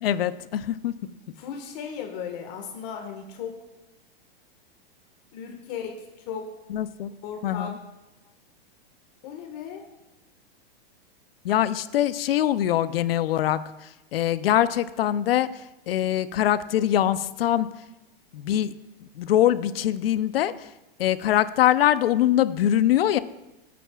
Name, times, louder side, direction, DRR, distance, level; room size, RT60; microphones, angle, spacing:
voice 1, 0.0-0.9 6.7-7.1 7.4-7.8 11.4-17.7 18.3-18.7 19.1-20.7 21.0-23.2, left 12 dB, 70° left, 14 dB, 0.7 m, -23 dB
voice 2, 1.1-3.5 5.3-6.5 7.2-7.7 9.2-9.8, left 7 dB, 45° left, 3 dB, 1.6 m, -36 dB
23.5 x 8.5 x 2.4 m, 0.97 s
hypercardioid pair, 150°, 30 cm